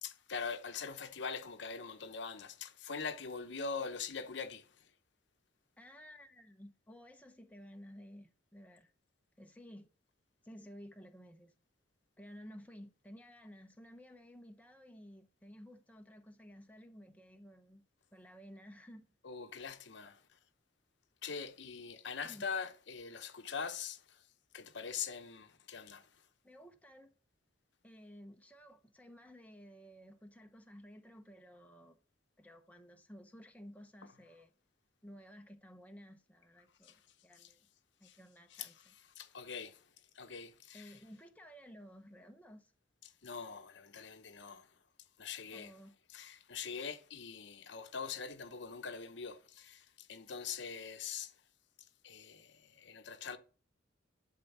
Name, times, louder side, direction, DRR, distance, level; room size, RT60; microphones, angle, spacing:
voice 1, 0.0-4.7 19.2-20.2 21.2-24.2 24.5-26.1 36.8-37.0 37.4-37.5 38.0-38.2 38.5-38.8 39.2-39.8 40.1-40.9 43.2-44.7 45.2-45.7 46.1-51.3 52.0-53.4, left 5 dB, 65° left, 0.9 m, -43 dB
voice 2, 5.8-8.9 9.4-9.9 10.4-11.5 12.2-17.8 18.1-19.1 22.2-22.4 26.4-27.1 27.8-32.0 32.4-34.5 35.0-37.7 38.0-38.9 40.7-42.7 45.5-46.0, equal, 10° left, 0.9 m, -54 dB
11.5 x 4.0 x 7.2 m
head